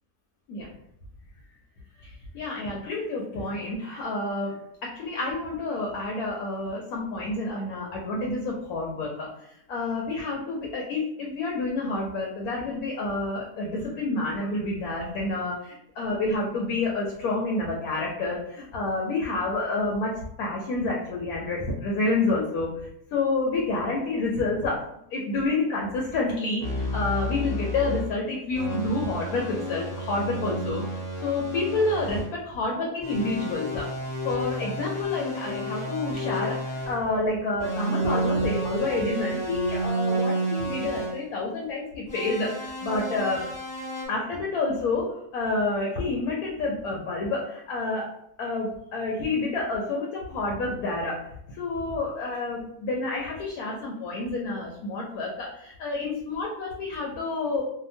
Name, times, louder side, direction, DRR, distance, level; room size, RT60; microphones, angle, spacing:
voice 1, 2.3-4.5 4.8-9.3 9.7-15.5 16.0-24.8 25.1-26.7 26.9-33.9 34.2-43.5 44.1-48.1 48.4-51.2 51.5-57.6, left 2 dB, 85° left, -2 dB, 1.1 m, -29 dB
sound 1, 26.6-28.1 28.5-32.3 33.0-37.1 37.6-41.2 42.1-44.1, right 1 dB, 5° left, 0.7 m, -31 dB
2.8 x 2.3 x 2.6 m, 0.75 s
omnidirectional pair, 1.5 m